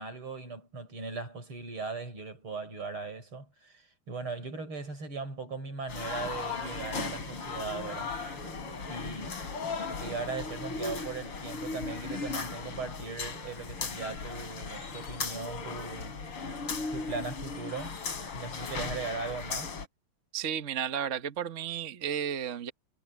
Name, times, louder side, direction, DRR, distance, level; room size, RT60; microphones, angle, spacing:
voice 1, 0.0-8.1 8.9-9.4 10.0-16.2 16.9-18.0 18.3-19.8, right 4 dB, 75° right, 6.9 m, -39 dB
sound 1, 5.9-19.9, left 4 dB, 85° left, 3.8 m, -37 dB
sound 2, 6.1-10.3, right 7 dB, 60° right, 3.2 m, -51 dB
voice 2, 20.3-22.7, right 9 dB, 40° right, 1.3 m, -33 dB
omnidirectional pair, 2.3 m